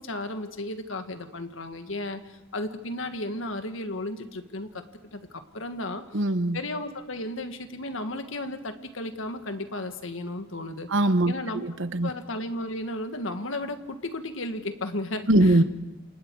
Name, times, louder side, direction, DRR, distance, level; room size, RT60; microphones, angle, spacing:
voice 1, 0.0-4.8 5.1-6.2 6.5-10.9 11.3-11.6 12.0-15.6, left 1 dB, 80° left, 7 dB, 1.8 m, -34 dB
voice 2, 6.1-6.6 10.9-12.1 15.3-15.6, right 1 dB, 70° right, 11 dB, 1.1 m, -22 dB
28.5 x 28.0 x 4.8 m, 1.0 s
head